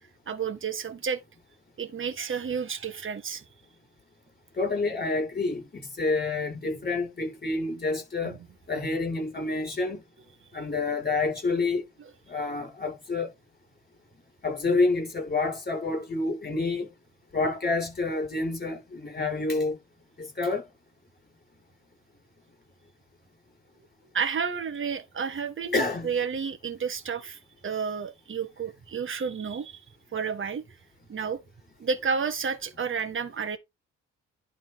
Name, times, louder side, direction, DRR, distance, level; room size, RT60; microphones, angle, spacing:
voice 1, 0.3-1.2 1.8-3.4 8.2-8.4 24.1-29.8 30.1-30.6 31.1-31.4 31.8-33.6, right 6 dB, 40° right, 1.7 m, -31 dB
voice 2, 4.6-8.4 8.7-10.0 10.5-11.8 12.3-13.3 14.4-16.9 17.3-19.8 20.2-20.6 25.7-26.1, left 3 dB, 30° left, 7.0 m, -28 dB
11.5 x 4.3 x 4.2 m
cardioid pair, 90°, 30 cm